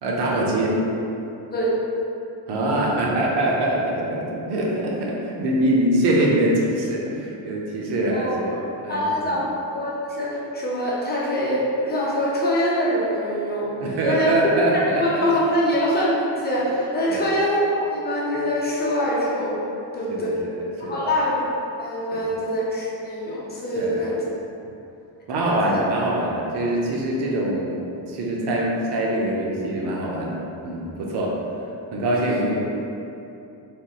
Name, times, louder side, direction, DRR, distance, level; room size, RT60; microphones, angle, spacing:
voice 1, 0.0-0.8 2.5-9.4 13.8-15.3 17.1-17.3 20.1-21.0 22.1-22.2 23.8-23.9 25.3-30.4 30.6-31.4 31.9-32.8, right 1 dB, 65° right, -2 dB, 0.6 m, -24 dB
voice 2, 8.1-8.6 8.9-9.4 9.7-13.7 14.0-14.4 14.7-19.7 19.9-20.4 20.8-21.4 21.8-24.2 25.5-25.8 32.1-32.4, equal, 25° left, -6 dB, 0.3 m, -24 dB
3.3 x 2.8 x 2.3 m, 2.8 s
cardioid pair, 165°, 44 cm